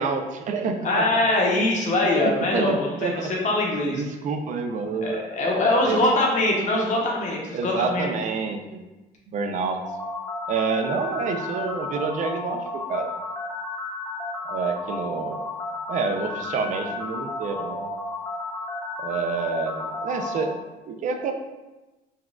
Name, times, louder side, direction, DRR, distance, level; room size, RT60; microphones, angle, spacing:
voice 1, 0.0-1.3 2.2-3.3 3.9-6.0 7.5-8.8 9.3-9.8 10.5-13.1 14.5-15.4 15.9-17.9 19.0-21.3, right 4 dB, 50° right, 5 dB, 0.4 m, -28 dB
voice 2, 0.8-4.0 5.0-8.0, left 2 dB, 45° left, -1 dB, 0.8 m, -23 dB
sound 1, 9.9-20.5, left 3 dB, 10° left, 0.8 m, -32 dB
4.0 x 2.3 x 2.3 m, 1.1 s
cardioid pair, 110°, 17 cm